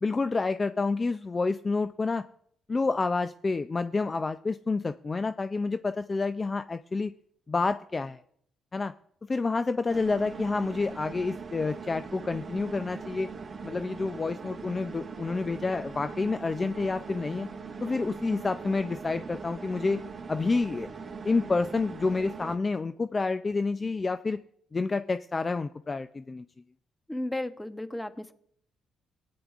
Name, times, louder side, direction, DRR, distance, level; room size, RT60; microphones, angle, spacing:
voice 1, 0.0-2.2 2.7-7.1 7.5-8.2 8.7-8.9 9.3-13.3 13.6-17.5 17.8-20.0 20.3-20.9 21.2-24.4 24.7-26.4, left 3 dB, 30° left, 10 dB, 0.4 m, -29 dB
sound 1, 9.9-22.6, right 5 dB, 40° right, 1.0 m, -41 dB
voice 2, 27.1-28.3, left 1 dB, 10° left, 9 dB, 0.9 m, -34 dB
17.5 x 9.4 x 2.4 m, 0.66 s
cardioid pair, 90°, 0 cm